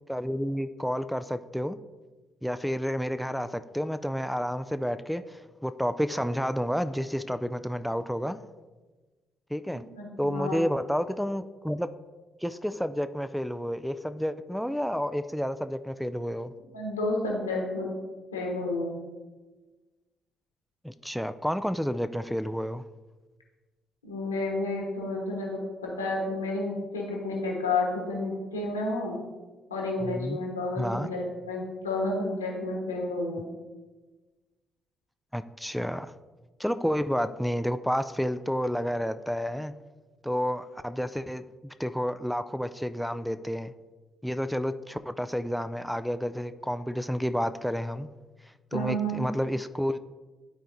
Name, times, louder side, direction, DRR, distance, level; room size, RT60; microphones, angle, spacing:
voice 1, 0.1-1.8 2.4-8.4 9.5-9.8 10.2-11.9 12.4-16.5 20.8-22.8 30.0-30.4 30.8-31.1 35.3-36.1 36.6-39.7 40.2-43.7 44.2-48.1 48.7-50.0, equal, ahead, 10 dB, 0.3 m, -30 dB
voice 2, 9.7-10.6 16.7-17.9 18.3-19.0 24.0-29.2 29.7-33.5 48.7-49.3, left 2 dB, 80° left, -1 dB, 1.2 m, -31 dB
12.5 x 4.5 x 2.6 m, 1.3 s
figure-of-eight pair, 40°, 0 cm